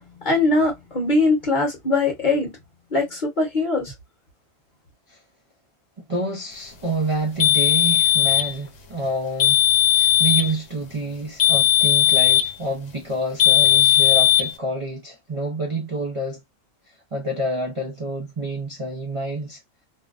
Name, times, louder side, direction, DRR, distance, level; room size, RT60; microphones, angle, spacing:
voice 1, 0.2-2.5 2.9-3.8, left 3 dB, 40° left, 1.0 m, -21 dB
voice 2, 6.1-16.4 17.1-19.6, right 1 dB, 45° right, 0.4 m, -28 dB
sound 1, 7.4-8.5 9.4-10.5 11.4-12.5 13.4-14.5, left 12 dB, 75° left, 1.0 m, -17 dB
2.6 x 2.1 x 2.4 m
omnidirectional pair, 1.4 m